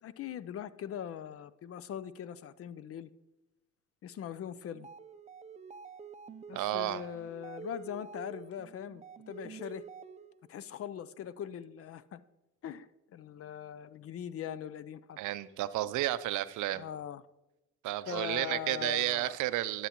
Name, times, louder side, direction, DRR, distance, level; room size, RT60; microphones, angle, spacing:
voice 1, 0.0-3.1 4.0-4.9 6.5-9.8 10.5-12.2 12.6-15.2 16.7-17.2 18.1-19.4, left 9 dB, 50° left, 17 dB, 0.5 m, -41 dB
sound 1, 4.7-10.5, right 6 dB, 25° right, 0.5 m, -48 dB
voice 2, 6.5-7.1 15.2-16.8 17.8-19.9, right 15 dB, 80° right, 15 dB, 0.5 m, -32 dB
10.0 x 8.0 x 2.9 m, 0.96 s
cardioid pair, 90°, 30 cm